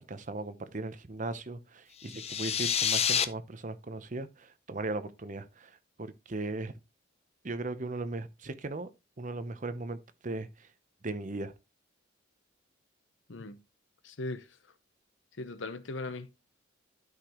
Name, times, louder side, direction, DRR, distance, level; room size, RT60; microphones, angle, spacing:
voice 1, 0.0-6.7 7.4-8.9 9.2-10.7 11.0-11.5, right 2 dB, 40° right, 0.8 m, -38 dB
sound 1, 2.0-3.2, left 8 dB, 30° left, 0.5 m, -28 dB
voice 2, 13.3-13.6 14.0-14.5 15.4-16.4, left 2 dB, 70° left, 0.8 m, -39 dB
12.5 x 5.0 x 3.0 m
head